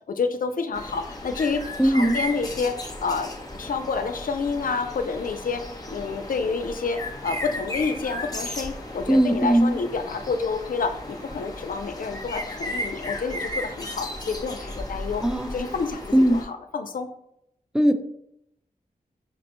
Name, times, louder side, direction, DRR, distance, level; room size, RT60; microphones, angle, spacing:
voice 1, 0.1-3.3 3.6-5.6 5.9-15.2 15.5-16.0 16.3-17.1, left 4 dB, 65° left, 7 dB, 0.4 m, -29 dB
sound 1, 0.7-16.4, left 1 dB, 25° left, 0.7 m, -35 dB
voice 2, 1.8-2.2 9.1-9.8 15.2-15.6 16.1-16.4 17.7-17.9, right 1 dB, 5° right, 9 dB, 0.3 m, -19 dB
5.2 x 2.1 x 2.9 m, 0.77 s
cardioid pair, 50°, 15 cm